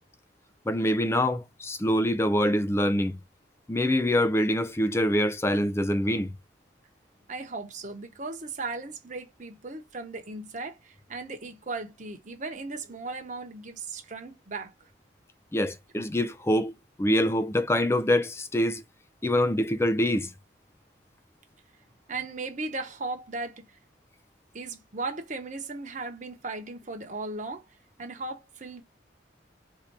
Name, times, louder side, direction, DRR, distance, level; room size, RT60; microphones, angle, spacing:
voice 1, 0.7-3.2 3.7-6.3 15.5-16.7 17.0-18.8 19.2-20.3, left 1 dB, 15° left, 0.4 m, -25 dB
voice 2, 7.3-14.7 22.1-23.8 24.5-27.6 28.0-28.8, right 3 dB, 40° right, 1.0 m, -37 dB
3.7 x 2.8 x 4.6 m
head